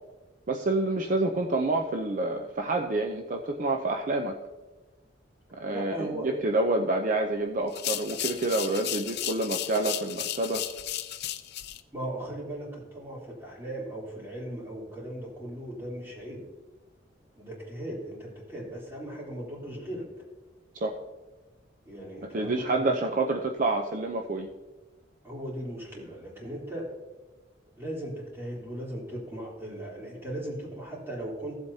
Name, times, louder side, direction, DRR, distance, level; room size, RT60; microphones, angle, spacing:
voice 1, 0.5-4.4 5.6-10.6 20.7-21.0 22.3-24.5, right 2 dB, 45° right, 3 dB, 0.6 m, -28 dB
voice 2, 5.7-6.7 11.9-16.4 17.3-20.0 21.8-23.0 25.2-26.9 27.8-31.6, right 1 dB, 15° right, -5 dB, 3.4 m, -38 dB
sound 1, 7.7-11.8, left 12 dB, 60° left, 0.5 m, -34 dB
15.5 x 7.8 x 2.8 m, 1.2 s
head